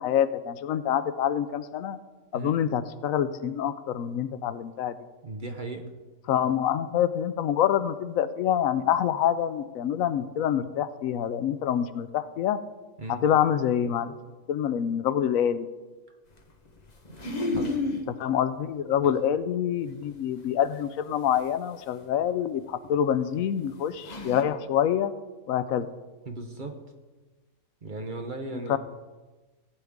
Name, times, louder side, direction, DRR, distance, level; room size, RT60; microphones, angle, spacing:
voice 1, 0.0-2.0 2.3-5.0 6.3-12.6 13.1-14.2 14.5-15.7 18.1-25.1 25.5-25.9 28.5-28.8, left 9 dB, 75° left, 13 dB, 1.0 m, -26 dB
voice 2, 5.2-5.8 13.0-13.2 17.6-17.8 19.0-19.1 26.3-26.8 27.8-28.8, right 2 dB, 40° right, 4 dB, 0.9 m, -36 dB
sound 1, 16.9-18.0 20.0-20.1 21.3-21.4 22.8-22.9 23.6-23.7 24.0-24.4, left 2 dB, 30° left, 1.1 m, -30 dB
15.5 x 9.1 x 3.6 m, 1.2 s
omnidirectional pair, 1.5 m